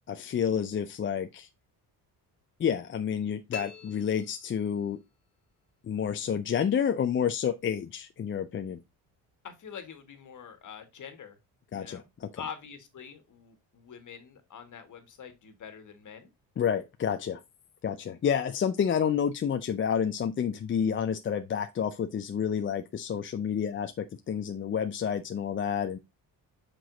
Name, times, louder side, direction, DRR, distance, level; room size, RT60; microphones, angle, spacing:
voice 1, 0.1-1.5 2.6-5.0 5.8-8.8 11.7-12.4 16.6-17.4 17.8-26.0, left 8 dB, 30° left, 0.5 m, -29 dB
sound 1, 3.5-5.1, left 5 dB, 85° left, 1.1 m, -45 dB
voice 2, 9.4-11.4 11.7-12.1 12.4-16.3, left 7 dB, 50° left, 1.6 m, -45 dB
6.0 x 4.8 x 3.9 m
cardioid pair, 100°, 40 cm